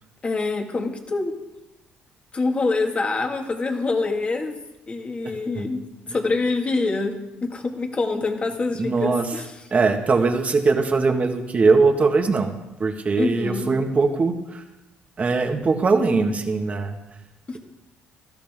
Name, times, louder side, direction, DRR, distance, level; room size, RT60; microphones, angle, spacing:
voice 1, 0.2-1.3 2.3-4.5 4.9-9.5 13.2-13.7 17.5-17.6, left 3 dB, 30° left, 3 dB, 2.1 m, -25 dB
voice 2, 8.8-9.3 9.7-14.6 15.2-17.0, right 4 dB, 35° right, 4 dB, 1.8 m, -21 dB
17.5 x 13.0 x 3.8 m, 0.98 s
cardioid pair, 95°, 4 cm